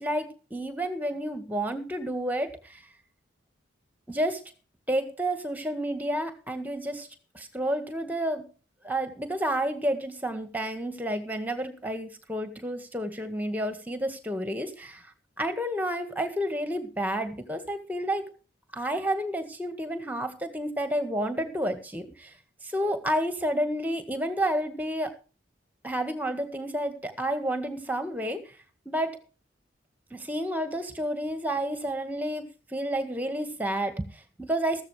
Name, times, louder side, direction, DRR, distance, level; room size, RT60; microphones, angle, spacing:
voice 1, 0.0-2.8 4.1-4.4 4.9-7.1 7.3-8.5 8.8-15.1 15.4-18.3 18.7-22.3 22.6-25.2 25.8-28.6 28.8-29.2 30.1-34.8, right 1 dB, 10° right, 8 dB, 1.7 m, -30 dB
14.5 x 13.0 x 3.4 m, 0.33 s
head